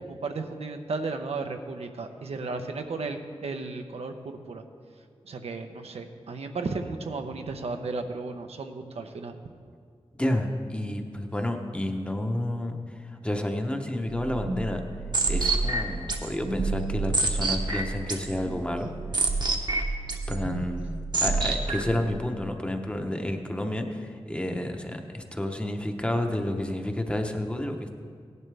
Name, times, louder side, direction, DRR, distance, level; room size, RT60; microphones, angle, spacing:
voice 1, 0.0-4.6 5.2-9.4, right 3 dB, 85° right, 5 dB, 0.8 m, -34 dB
voice 2, 10.1-14.8 15.3-18.9 20.3-21.0 21.2-28.0, left 1 dB, 10° left, 4 dB, 0.8 m, -30 dB
sound 1, 14.1-22.0, right 3 dB, 45° right, 1.0 m, -28 dB
17.0 x 11.0 x 3.4 m, 2.1 s
wide cardioid pair, 100°, 10 cm